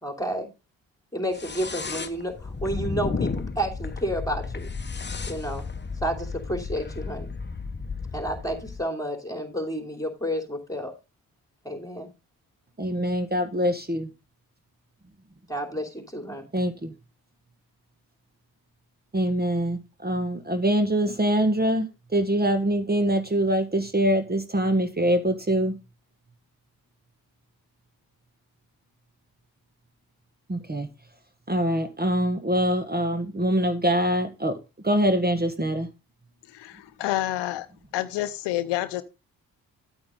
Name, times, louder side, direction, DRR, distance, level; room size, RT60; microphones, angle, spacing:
voice 1, 0.0-0.5 1.1-4.7 5.3-5.6 6.0-7.3 8.1-10.9 11.6-12.1 15.5-16.5, equal, 10° left, 3.1 m, -30 dB
sound 1, 1.3-8.9, left 4 dB, 25° left, 1.0 m, -33 dB
voice 2, 12.8-14.1 16.5-16.9 19.1-25.8 30.5-30.9 31.5-34.6 34.8-35.9, right 1 dB, 25° right, 1.3 m, -24 dB
voice 3, 36.5-37.7 37.9-39.0, left 15 dB, 90° left, 0.7 m, -28 dB
8.7 x 8.2 x 3.7 m
supercardioid pair, 45°, 41 cm